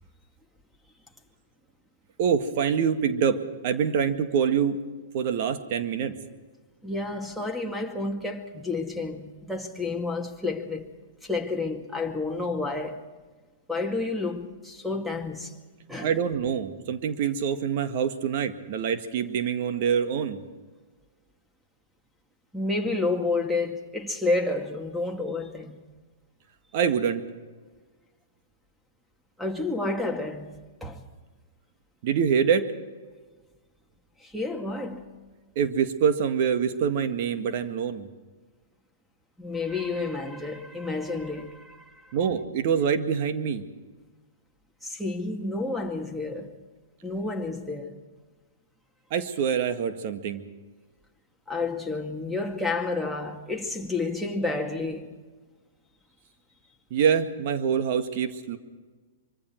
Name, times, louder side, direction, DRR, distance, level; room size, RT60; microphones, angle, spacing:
voice 1, 2.2-4.8 5.1-6.2 16.0-20.4 26.7-27.2 32.0-32.7 35.6-38.1 42.1-43.6 49.1-50.4 56.9-58.6, right 7 dB, 50° right, 1.8 m, -25 dB
voice 2, 6.8-10.8 11.2-13.0 13.7-15.5 15.9-16.1 22.5-25.8 29.4-30.5 30.8-31.0 34.2-35.0 39.4-42.1 44.8-46.6 47.0-48.0 51.5-55.2, left 3 dB, ahead, 2.2 m, -30 dB
25.0 x 23.5 x 4.6 m
hypercardioid pair, 115°, 0 cm